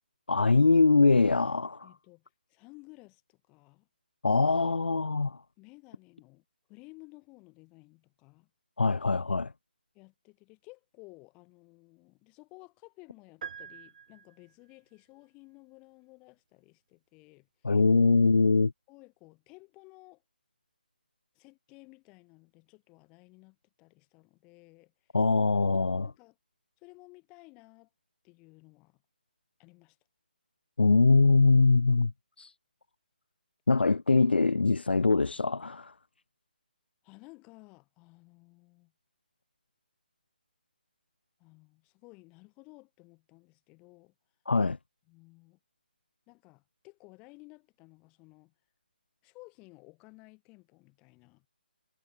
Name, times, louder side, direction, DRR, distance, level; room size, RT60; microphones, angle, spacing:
voice 1, 0.3-1.9 4.2-5.4 8.8-9.5 17.6-18.7 25.1-26.1 30.8-32.1 32.4-32.5 33.7-35.9 44.5-44.8, left 3 dB, 85° left, 0.5 m, -23 dB
voice 2, 1.8-3.9 5.6-8.5 9.9-17.8 18.9-20.2 21.3-24.9 26.0-26.4 26.8-27.9 28.2-29.0 29.6-30.0 37.0-38.9 41.4-44.1 45.1-45.6 46.3-48.5 49.2-51.5, left 27 dB, 20° left, 4.5 m, -55 dB
sound 1, 13.4-14.7, right 7 dB, 50° right, 0.8 m, -45 dB
figure-of-eight pair, 155°, 5 cm